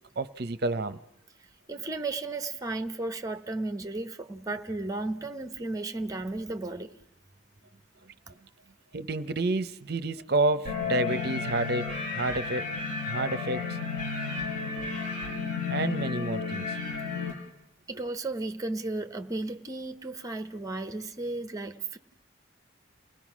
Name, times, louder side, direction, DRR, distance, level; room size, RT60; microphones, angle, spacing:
voice 1, 0.2-1.0 8.0-8.1 8.9-12.7 13.1-13.8 15.7-16.8, right 2 dB, 50° right, 0.7 m, -29 dB
voice 2, 1.7-6.9 17.9-22.0, right 2 dB, 15° right, 0.9 m, -34 dB
sound 1, 10.7-17.3, left 4 dB, 40° left, 4.8 m, -32 dB
28.5 x 19.0 x 6.2 m
head